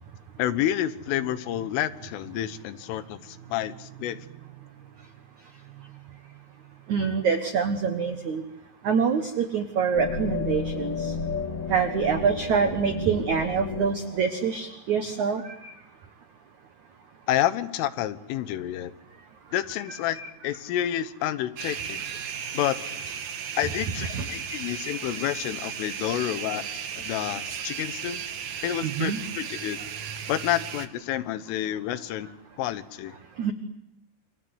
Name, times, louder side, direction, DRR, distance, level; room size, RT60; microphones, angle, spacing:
voice 1, 0.4-4.2 17.3-18.9 19.5-22.0 22.6-22.9 23.6-26.6 27.0-28.2 28.6-29.9 30.3-32.3 32.6-33.2, left 12 dB, 85° left, 13 dB, 3.7 m, -29 dB
voice 2, 6.9-8.4 8.8-11.1 11.7-15.7 20.1-20.3 24.1-24.2 28.8-29.2 33.4-33.5, right 6 dB, 85° right, 8 dB, 1.6 m, -26 dB
sound 1, 9.9-14.7, left 5 dB, 55° left, 1.3 m, -32 dB
sound 2, 21.6-30.9, right 8 dB, 65° right, 1.9 m, -35 dB
28.5 x 26.0 x 8.0 m, 0.83 s
omnidirectional pair, 5.7 m